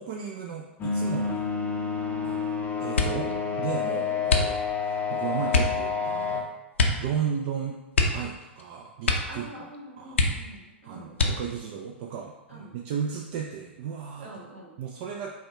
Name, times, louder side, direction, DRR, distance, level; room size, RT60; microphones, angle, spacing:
voice 1, 0.0-1.5 2.2-6.5 7.0-7.8 8.1-9.7 10.0-10.2 10.8-14.3 14.8-15.3, right 7 dB, 50° right, 1 dB, 0.4 m, -34 dB
sound 1, 0.8-6.4, left 5 dB, 25° left, 0.5 m, -29 dB
sound 2, 2.9-3.4 4.2-4.9 5.5-5.8 6.7-7.1 7.4-7.5 7.9-8.7 9.0-9.4 9.7-9.8 10.1-10.7 11.1-11.7 12.4-13.0 13.4-13.8, left 3 dB, 80° left, 0.6 m, -25 dB
voice 2, 3.8-4.4 9.3-11.1 12.5-12.7 14.2-14.8, right 1 dB, 75° right, -3 dB, 1.4 m, -45 dB
5.2 x 2.3 x 3.5 m, 1.1 s
figure-of-eight pair, 105°, 6 cm